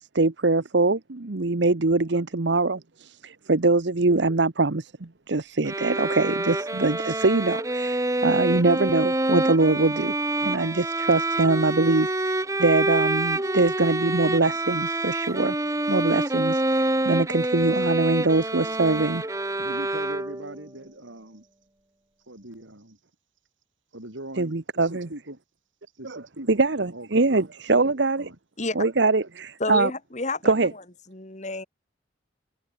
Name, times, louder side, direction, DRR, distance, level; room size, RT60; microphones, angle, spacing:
voice 1, 0.0-10.1 10.4-15.5 15.9-19.2 24.4-25.1 26.0-26.2 26.5-28.2 28.8-29.9 30.4-30.7, right 3 dB, 65° right, 1.0 m, -23 dB
sound 1, 5.6-20.6, right 2 dB, 15° right, 1.2 m, -26 dB
voice 2, 19.6-21.5 22.3-23.0 23.9-25.4 26.0-27.4 27.7-28.4 29.2-29.3, right 1 dB, 80° right, 5.4 m, -41 dB
voice 3, 29.6-30.8 31.1-31.6, left 2 dB, 40° left, 2.7 m, -30 dB
head